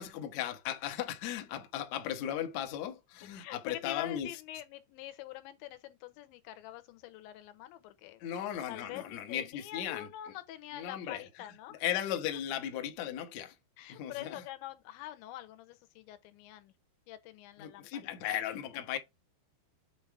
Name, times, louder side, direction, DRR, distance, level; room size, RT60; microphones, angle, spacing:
voice 1, 0.0-4.3 8.2-10.1 10.7-11.2 11.8-13.5 13.9-14.4 17.6-19.0, left 10 dB, 75° left, 1.6 m, -36 dB
voice 2, 3.4-8.2 8.7-11.8 13.8-16.7 17.1-18.4, left 14 dB, 90° left, 3.3 m, -45 dB
8.0 x 3.4 x 4.7 m
omnidirectional pair, 5.1 m